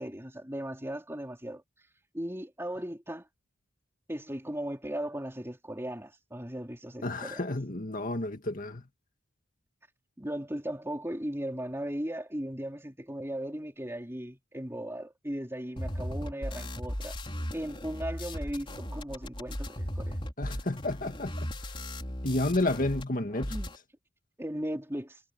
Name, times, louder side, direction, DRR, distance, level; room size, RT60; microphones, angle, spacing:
voice 1, 0.0-1.6 2.1-3.3 4.1-7.4 10.2-17.2 17.5-20.2 23.5-23.7 24.4-25.2, right 1 dB, 15° right, 3.6 m, -37 dB
voice 2, 7.0-8.8 20.4-21.8 22.2-23.6, left 2 dB, 45° left, 2.1 m, -31 dB
sound 1, 15.8-23.0 23.3-23.8, equal, 25° left, 4.7 m, -37 dB
head